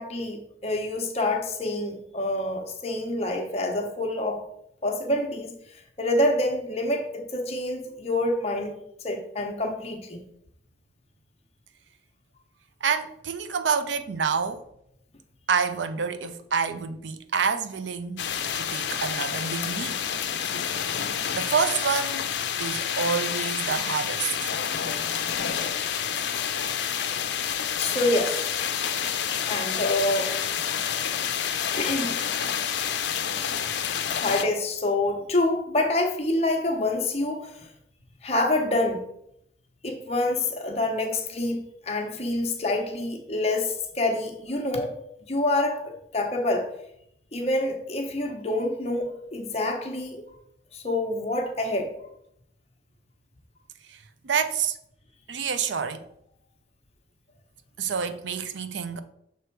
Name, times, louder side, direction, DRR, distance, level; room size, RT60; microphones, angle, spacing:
voice 1, 0.0-4.4 4.8-5.5 6.0-8.8 9.0-10.2 27.8-28.4 29.5-30.3 31.8-32.1 34.2-37.7 38.2-39.0 39.8-44.9 45.3-46.7 47.3-50.2 50.7-51.9, left 2 dB, 35° left, 0.9 m, -27 dB
voice 2, 12.8-14.6 15.5-18.2 18.5-20.0 21.0-22.3 22.6-24.5 24.9-25.2 54.2-54.8 55.3-56.1 57.8-59.0, right 6 dB, 85° right, 0.5 m, -28 dB
sound 1, 18.2-34.4, left 8 dB, 80° left, 0.5 m, -28 dB
6.7 x 3.4 x 4.6 m
head